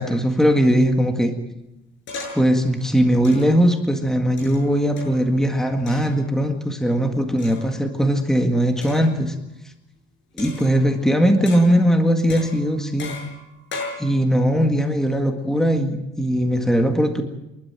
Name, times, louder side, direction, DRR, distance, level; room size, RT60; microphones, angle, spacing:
voice 1, 0.0-1.3 2.4-9.3 10.4-13.1 14.0-17.2, equal, ahead, 4 dB, 1.8 m, -19 dB
sound 1, 2.1-2.6 3.2-3.7 4.4-5.3 5.9-6.2 7.4-7.9 8.8-9.2 10.4-11.0 11.4-11.9 12.3-14.0, left 3 dB, 65° left, 7.5 m, -36 dB
27.5 x 12.0 x 8.9 m, 0.93 s
cardioid pair, 145°, 21 cm